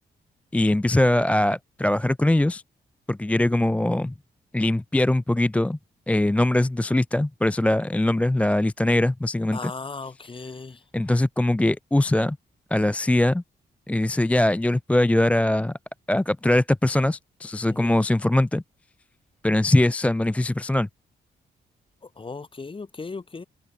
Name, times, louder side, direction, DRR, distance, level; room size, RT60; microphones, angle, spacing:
voice 1, 0.5-2.6 3.1-4.1 4.5-5.8 6.1-9.7 10.9-12.4 12.7-13.4 13.9-15.7 16.1-18.6 19.4-20.9, left 1 dB, 5° left, 0.4 m, -21 dB
voice 2, 9.5-10.8 17.7-18.0 22.2-23.4, left 4 dB, 30° left, 1.4 m, -36 dB
open air
cardioid pair, 80°, 19 cm